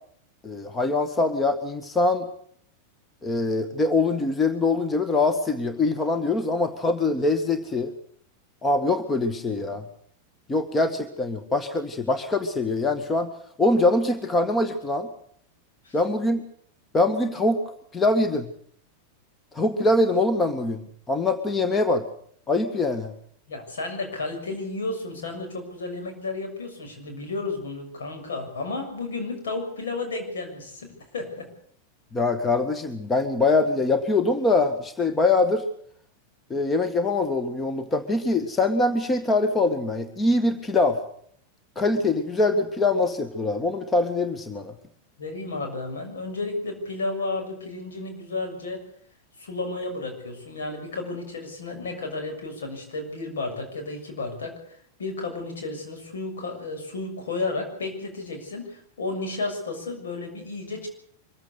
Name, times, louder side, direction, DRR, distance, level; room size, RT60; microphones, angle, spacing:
voice 1, 0.4-2.3 3.2-7.9 8.6-9.9 10.5-13.3 13.6-15.1 15.9-16.4 16.9-18.5 19.5-22.1 22.5-23.1 32.1-35.7 36.5-41.0 41.8-44.7, left 2 dB, 15° left, 9 dB, 1.8 m, -23 dB
voice 2, 23.5-31.5 45.2-48.8 49.4-60.9, left 3 dB, 65° left, 4 dB, 6.7 m, -32 dB
24.5 x 15.5 x 8.3 m, 0.63 s
figure-of-eight pair, 90°, 0 cm